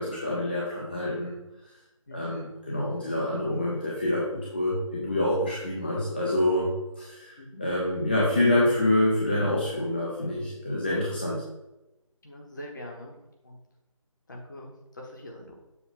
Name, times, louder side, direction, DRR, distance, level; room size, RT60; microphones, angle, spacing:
voice 1, 0.0-1.3 2.1-11.4, left 1 dB, 20° left, -5 dB, 0.5 m, -27 dB
voice 2, 12.2-13.7 14.3-15.6, left 1 dB, 35° left, 0 dB, 1.1 m, -43 dB
7.0 x 2.5 x 5.2 m, 0.98 s
figure-of-eight pair, 160°, 17 cm